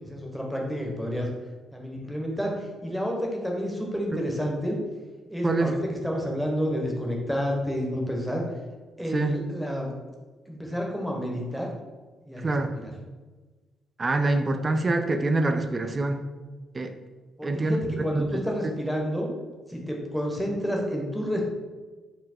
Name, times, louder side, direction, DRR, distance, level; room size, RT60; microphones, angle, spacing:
voice 1, 0.0-1.3 1.7-2.5 2.8-4.8 5.3-8.4 9.0-9.9 10.5-11.7 12.3-12.9 17.4-19.3 19.7-21.4, equal, ahead, 0 dB, 0.9 m, -30 dB
voice 2, 12.4-12.8 14.0-16.2 16.7-16.9 17.4-17.8 18.1-18.4, right 2 dB, 30° right, 7 dB, 0.4 m, -25 dB
4.3 x 2.1 x 4.2 m, 1.3 s
cardioid pair, 90°, 0 cm